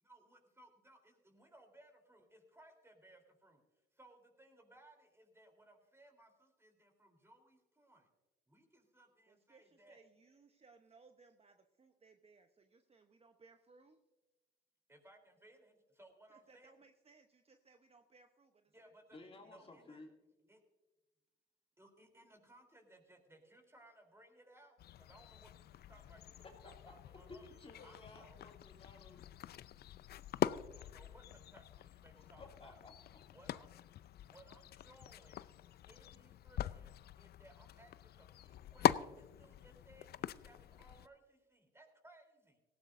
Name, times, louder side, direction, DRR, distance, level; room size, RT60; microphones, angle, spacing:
voice 1, 0.0-3.6 3.9-8.1 8.5-10.0 14.9-16.7 18.7-19.2 19.4-20.0 20.5-20.6 21.8-28.4 30.7-32.8 33.3-33.7 34.3-35.5 35.9-36.9 37.2-42.6, right 1 dB, 15° right, 4 dB, 3.7 m, -63 dB
voice 2, 9.3-14.0 16.3-18.8 19.2-19.3 19.6-19.8, right 4 dB, 35° right, 6 dB, 1.0 m, -65 dB
voice 3, 19.1-20.1 26.4-29.2 32.2-33.2, left 2 dB, 30° left, 1 dB, 2.6 m, -56 dB
sound 1, 24.8-41.1, left 12 dB, 55° left, 0.5 m, -42 dB
17.5 x 15.0 x 2.7 m, 1.1 s
supercardioid pair, 70°, 19 cm